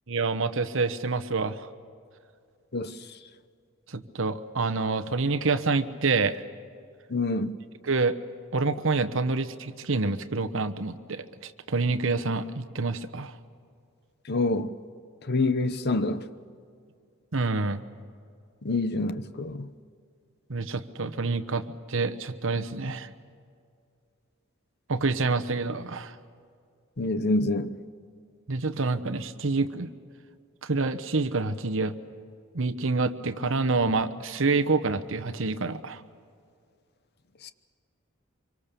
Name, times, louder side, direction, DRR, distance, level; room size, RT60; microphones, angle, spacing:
voice 1, 0.1-1.7 3.9-6.4 7.8-8.2 8.5-13.3 17.3-17.8 20.5-23.1 24.9-26.1 28.5-29.9 30.6-31.9 32.5-36.0, right 3 dB, 65° right, 1.1 m, -27 dB
voice 2, 7.1-7.6 14.3-14.8 15.3-16.2 18.6-19.7 27.0-27.8 37.4-37.5, left 2 dB, 50° left, 0.9 m, -26 dB
25.5 x 24.0 x 7.0 m
head